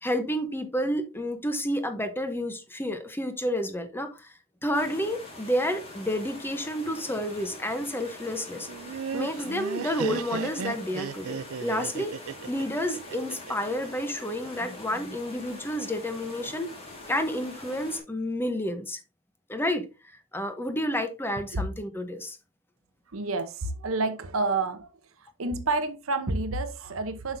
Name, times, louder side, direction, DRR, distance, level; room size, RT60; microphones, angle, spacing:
voice 1, 0.0-4.3 4.6-8.7 9.1-12.1 12.5-16.7 17.1-19.0 19.5-19.8 20.3-22.4, equal, 10° left, 0.9 m, -30 dB
sound 1, 4.7-18.0, left 1 dB, 30° left, 2.6 m, -44 dB
Laughter, 8.7-13.7, right 6 dB, 85° right, 0.5 m, -35 dB
voice 2, 23.1-24.9 25.2-27.4, right 3 dB, 70° right, 0.9 m, -29 dB
7.5 x 6.1 x 2.7 m
head